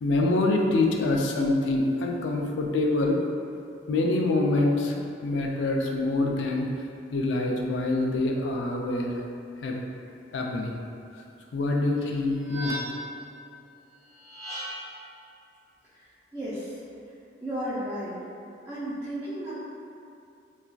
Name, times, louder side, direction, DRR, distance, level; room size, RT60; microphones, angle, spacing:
voice 1, 0.0-3.2 3.9-6.7 7.1-9.2 9.6-9.8 10.3-10.7 11.5-12.8, left 2 dB, 75° left, 1 dB, 0.4 m, -25 dB
sound 1, 12.0-13.2 14.1-15.0, equal, 35° right, 0.9 m, -37 dB
voice 2, 16.3-16.7 17.4-18.1 18.7-19.6, right 1 dB, 15° right, -13 dB, 0.5 m, -33 dB
3.9 x 2.4 x 2.3 m, 2.6 s
head